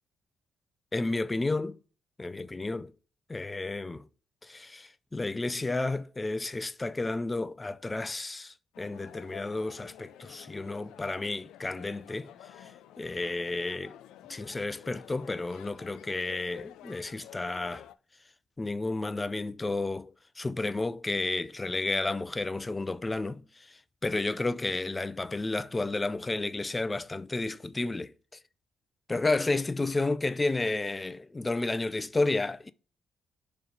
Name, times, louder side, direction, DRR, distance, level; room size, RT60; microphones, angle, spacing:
voice 1, 0.9-1.8 2.2-2.9 3.3-4.1 4.4-12.3 13.0-13.9 14.3-17.9 18.6-28.1 29.1-32.7, left 2 dB, 20° left, 0.4 m, -32 dB
sound 1, 8.7-17.9, left 12 dB, 90° left, 0.3 m, -51 dB
5.5 x 3.8 x 5.5 m
cardioid pair, 90°, 0 cm